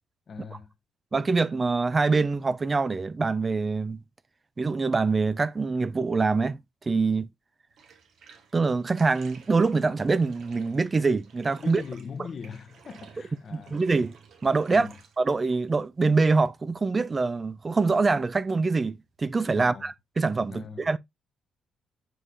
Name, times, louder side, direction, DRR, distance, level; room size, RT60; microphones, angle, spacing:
voice 1, 0.3-0.7 11.6-13.8 14.7-15.0 19.6-19.9 20.5-20.8, left 5 dB, 50° left, 0.8 m, -40 dB
voice 2, 1.1-4.0 4.6-6.6 6.9-7.3 8.5-11.8 13.5-14.1 14.4-14.9 15.2-21.0, right 4 dB, 30° right, 0.3 m, -24 dB
Bathtub (filling or washing), 7.7-19.4, right 6 dB, 65° right, 1.2 m, -54 dB
7.7 x 4.8 x 2.6 m
cardioid pair, 90°, 0 cm